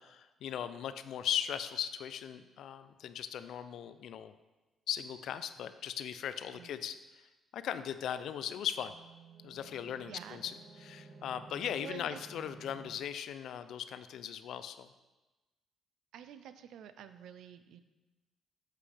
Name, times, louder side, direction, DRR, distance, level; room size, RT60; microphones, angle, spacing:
voice 1, 0.0-4.3 4.9-6.9 7.5-8.9 9.4-10.5 10.8-14.9, left 9 dB, 75° left, 12 dB, 0.4 m, -38 dB
sound 1, 8.6-12.9, right 3 dB, 60° right, 2.0 m, -54 dB
voice 2, 10.0-10.4 11.8-12.2 16.1-17.8, right 9 dB, 80° right, 11 dB, 0.5 m, -49 dB
8.2 x 7.6 x 3.4 m, 1.1 s
cardioid pair, 90°, 0 cm